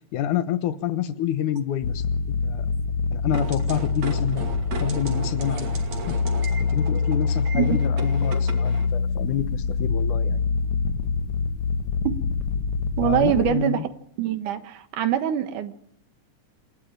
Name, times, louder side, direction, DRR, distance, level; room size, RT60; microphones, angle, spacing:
voice 1, 0.1-2.1 2.4-2.7 3.1-5.9 6.6-10.4 13.0-13.9, left 10 dB, 85° left, 12 dB, 2.7 m, -28 dB
sound 1, 1.8-13.5, left 5 dB, 60° left, 1.6 m, -25 dB
sound 2, 3.3-8.9, right 4 dB, 65° right, 3.7 m, -36 dB
voice 2, 13.0-13.8 14.2-15.7, right 10 dB, 90° right, 9 dB, 2.9 m, -23 dB
28.0 x 12.5 x 7.6 m, 0.70 s
omnidirectional pair, 3.5 m